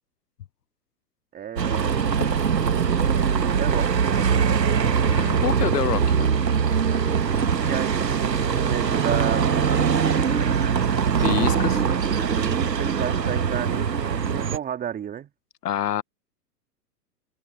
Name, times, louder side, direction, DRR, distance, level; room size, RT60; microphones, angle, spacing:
voice 1, 1.3-2.3 2.6-4.0 7.6-10.4 11.3-15.3, right 9 dB, 20° right, 2.6 m, -32 dB
Bus, 1.6-14.6, right 7 dB, 85° right, 1.5 m, -22 dB
voice 2, 5.0-6.3 11.2-11.8 15.6-16.0, left 10 dB, 70° left, 0.9 m, -27 dB
figure-of-eight pair, 110°, 49 cm